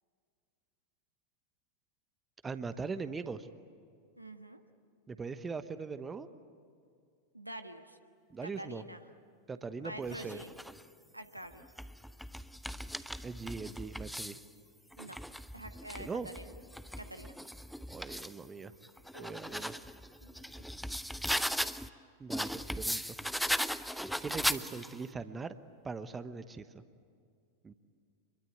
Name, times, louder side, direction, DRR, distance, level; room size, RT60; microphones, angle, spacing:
voice 1, 2.4-3.5 5.1-6.3 8.3-8.8 9.5-10.4 13.2-14.4 16.0-16.3 17.9-18.7 19.2-19.7 22.2-23.1 24.2-25.5 25.8-26.8 27.6-27.7, right 4 dB, 15° right, 12 dB, 1.0 m, -40 dB
voice 2, 4.2-4.6 7.3-8.0 8.4-9.0 9.8-10.5 11.1-11.6 15.0-15.2 15.5-16.1 16.4-16.5 17.0-17.4 19.1-19.6 20.2-20.5, right 1 dB, 85° right, 7 dB, 1.4 m, -47 dB
sound 1, 10.0-10.8 11.5-14.5 14.9-18.4 18.8-21.9 22.3-25.0, equal, ahead, 0.7 m, -38 dB
27.0 x 22.0 x 9.4 m, 2.3 s
figure-of-eight pair, 90°, 0 cm